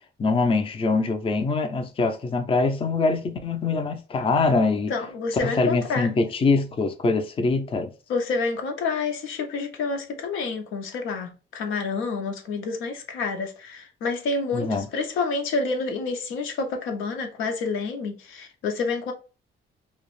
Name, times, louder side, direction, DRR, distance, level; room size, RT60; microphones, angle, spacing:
voice 1, 0.2-4.9 5.4-7.9 14.5-14.9, left 3 dB, 25° left, 0.4 m, -23 dB
voice 2, 4.9-6.1 8.1-19.1, left 4 dB, 85° left, 0.5 m, -28 dB
2.3 x 2.0 x 3.0 m
cardioid pair, 90°, 20 cm